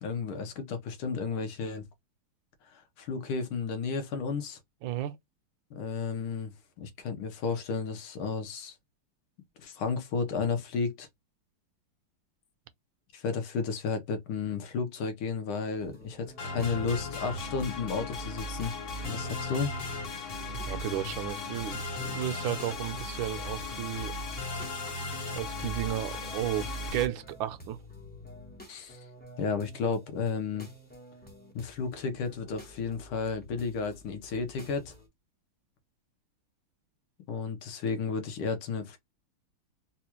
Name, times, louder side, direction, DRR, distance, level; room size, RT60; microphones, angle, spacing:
voice 1, 0.0-1.8 2.6-4.6 5.7-6.5 6.8-8.8 9.6-11.1 13.1-18.7 19.0-19.7 28.7-29.1 29.4-30.7 31.5-34.9 37.3-39.0, left 5 dB, 85° left, 1.8 m, -33 dB
voice 2, 4.8-5.2 20.7-24.2 25.3-27.8, right 12 dB, 75° right, 1.2 m, -33 dB
sound 1, 15.8-35.1, left 2 dB, 10° left, 0.4 m, -49 dB
sound 2, 16.4-27.1, left 2 dB, 50° left, 1.0 m, -37 dB
4.1 x 2.4 x 2.9 m
omnidirectional pair, 2.3 m